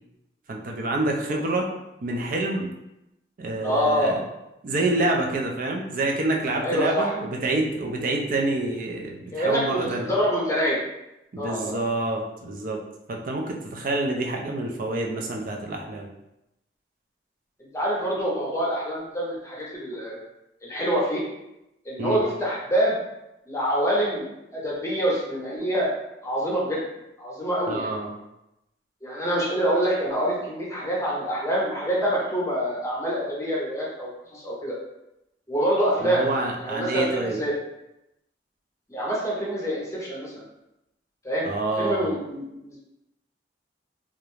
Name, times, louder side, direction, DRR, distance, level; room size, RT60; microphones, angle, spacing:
voice 1, 0.5-1.7 2.0-2.7 3.4-4.2 4.6-10.1 11.3-12.8 13.1-16.1 22.0-22.2 27.7-28.1 36.0-37.4 41.4-42.1, right 2 dB, 50° right, 1 dB, 0.4 m, -27 dB
voice 2, 3.6-4.2 6.6-7.1 9.3-10.8 11.4-11.8 17.7-20.2 20.6-21.2 21.8-23.0 23.5-25.9 26.2-26.9 27.2-28.0 29.0-34.8 35.5-36.2 36.6-37.5 38.9-40.3 41.2-41.5 41.8-42.8, equal, 15° left, -5 dB, 0.6 m, -26 dB
2.4 x 2.1 x 3.0 m, 0.89 s
head